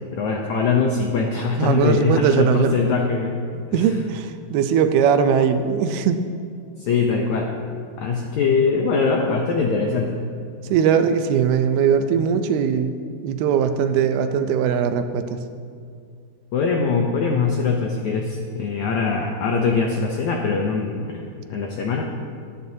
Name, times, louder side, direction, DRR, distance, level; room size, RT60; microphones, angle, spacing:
voice 1, 0.1-3.4 3.7-3.9 6.8-7.5 8.0-10.2 16.5-21.2 21.5-22.1, left 4 dB, 80° left, 1 dB, 1.6 m, -22 dB
voice 2, 1.6-2.8 3.5-6.2 10.7-12.9 13.2-15.4, right 7 dB, 85° right, 8 dB, 2.6 m, -20 dB
22.5 x 9.4 x 2.8 m, 2.3 s
omnidirectional pair, 4.4 m